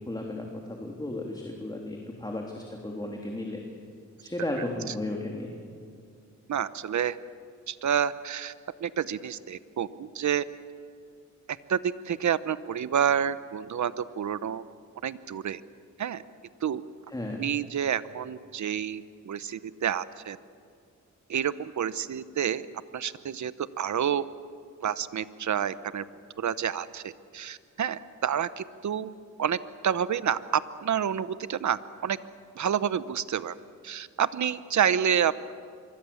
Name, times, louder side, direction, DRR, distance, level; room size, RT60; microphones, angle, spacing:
voice 1, 0.0-3.6 4.2-5.5 17.1-17.4, left 1 dB, 15° left, 0 dB, 3.4 m, -34 dB
voice 2, 6.5-7.2 7.7-8.5 8.8-10.4 11.5-11.8 12.0-14.6 15.0-15.6 16.0-16.2 16.6-16.8 17.4-20.4 21.3-22.7 22.9-24.2 24.8-26.0 26.4-29.1 29.4-29.6 29.8-32.2 32.5-33.5 33.8-35.3, right 8 dB, 70° right, 15 dB, 0.9 m, -29 dB
26.0 x 23.0 x 7.2 m, 2.3 s
cardioid pair, 75°, 30 cm